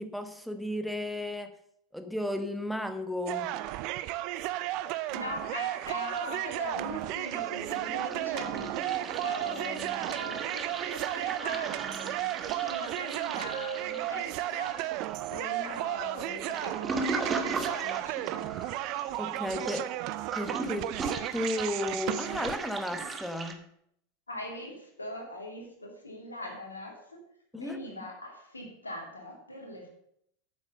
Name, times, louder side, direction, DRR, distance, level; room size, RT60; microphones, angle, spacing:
voice 1, 0.0-1.6 1.9-3.5 19.2-19.9 20.3-21.0 21.3-23.7 27.5-27.9, left 1 dB, ahead, 9 dB, 1.1 m, -34 dB
sound 1, 3.3-22.6, right 15 dB, 50° right, 0.5 m, -34 dB
voice 2, 5.1-14.8 15.2-18.6 24.3-27.2 27.5-29.9, left 1 dB, 90° left, 0 dB, 2.7 m, -41 dB
Toilet flush, 5.9-6.8 7.1-23.5, right 4 dB, 25° right, 1.3 m, -39 dB
9.0 x 7.2 x 6.5 m, 0.73 s
figure-of-eight pair, 85°, 0 cm